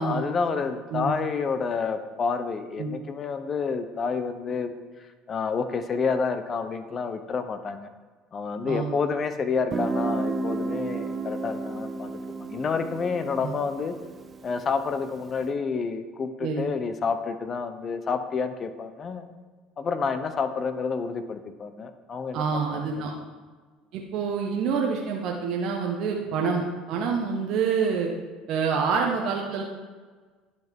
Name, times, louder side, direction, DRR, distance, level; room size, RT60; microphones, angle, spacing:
voice 1, 0.0-4.7 5.3-7.9 8.3-12.1 12.4-14.0 14.4-19.3 19.8-22.8, left 5 dB, 40° left, 10 dB, 0.7 m, -29 dB
voice 2, 8.7-9.0 13.4-13.5 16.4-16.7 22.3-23.1 23.9-28.1 28.5-29.6, right 5 dB, 60° right, 0 dB, 1.0 m, -27 dB
Guitar, 9.7-15.3, right 3 dB, 30° right, 0.5 m, -32 dB
10.5 x 5.6 x 3.6 m, 1.4 s
supercardioid pair, 85°, 0 cm